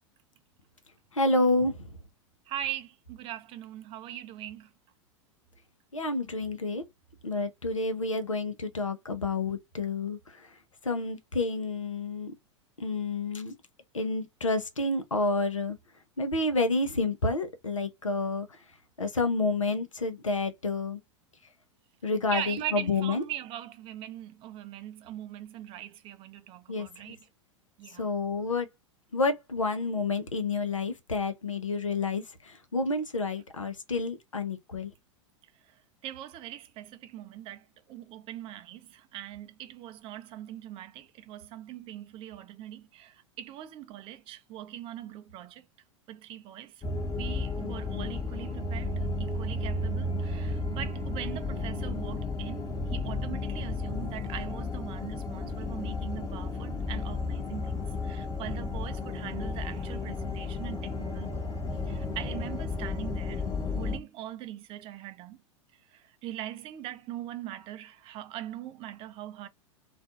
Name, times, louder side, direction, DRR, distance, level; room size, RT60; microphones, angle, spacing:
voice 1, 1.1-1.9 5.9-6.8 7.2-10.2 10.8-12.3 12.8-13.5 13.9-15.8 16.2-18.5 19.0-21.0 22.0-23.2 26.7-27.1 28.0-28.7 29.1-34.9, left 3 dB, 90° left, 0.6 m, -29 dB
voice 2, 2.5-4.7 22.3-27.2 27.8-28.1 36.0-37.6 37.9-45.6 46.1-46.7 47.2-48.9 49.2-61.4 61.9-63.4 63.8-65.4 66.2-69.5, right 12 dB, 35° right, 0.5 m, -41 dB
sound 1, 46.8-64.0, left 3 dB, 20° left, 0.7 m, -33 dB
2.5 x 2.3 x 2.4 m
figure-of-eight pair, 90°, 16 cm